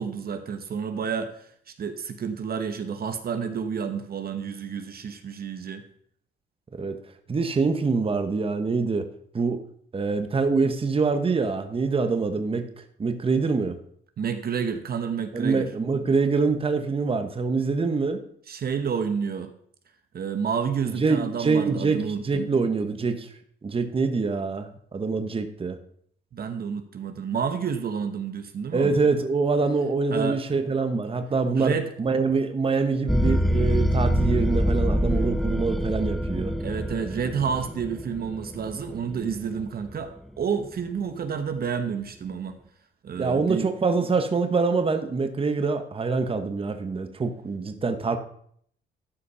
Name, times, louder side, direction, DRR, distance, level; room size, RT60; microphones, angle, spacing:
voice 1, 0.0-5.8 14.2-15.7 18.5-19.5 20.1-22.5 26.3-29.0 30.1-30.4 31.6-31.9 36.6-42.6 43.0-43.7, right 6 dB, 50° right, 8 dB, 1.1 m, -30 dB
voice 2, 7.3-9.1 9.3-9.6 9.9-13.8 15.3-18.2 21.0-23.3 23.6-25.8 28.7-36.5 43.2-48.2, right 4 dB, 30° right, 8 dB, 1.0 m, -25 dB
sound 1, 33.1-40.0, equal, ahead, 0.5 m, -25 dB
12.5 x 5.1 x 5.6 m, 0.63 s
cardioid pair, 90°, 20 cm